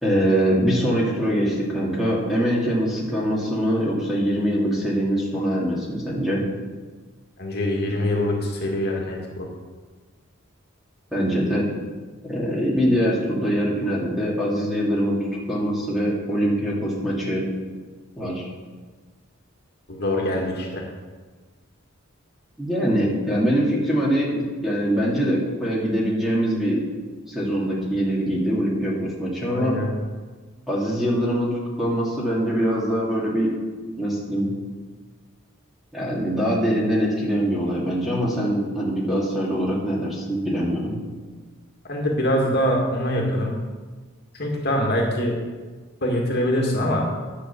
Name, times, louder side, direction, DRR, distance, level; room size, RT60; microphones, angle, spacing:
voice 1, 0.0-6.4 11.1-11.6 12.2-15.2 15.5-17.4 18.2-18.5 22.6-26.8 27.3-29.8 30.7-33.5 34.0-34.5 35.9-40.9, equal, ahead, -5 dB, 2.3 m, -23 dB
voice 2, 7.4-9.5 19.9-20.9 29.5-29.9 41.9-43.5 44.3-45.3 46.0-47.1, left 1 dB, 50° left, -1 dB, 2.0 m, -24 dB
10.5 x 6.6 x 7.2 m, 1.4 s
head